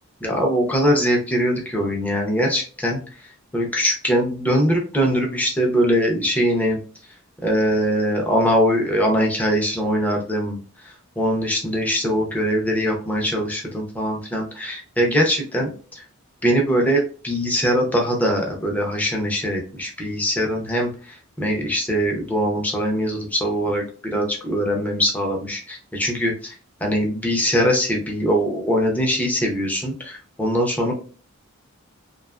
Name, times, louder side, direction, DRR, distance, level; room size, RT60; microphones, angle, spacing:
voice 1, 0.2-3.0 3.5-6.8 7.4-10.6 11.2-16.0 16.4-26.5 26.8-30.9, equal, 5° left, 0 dB, 0.5 m, -22 dB
2.7 x 2.3 x 2.2 m, 0.38 s
head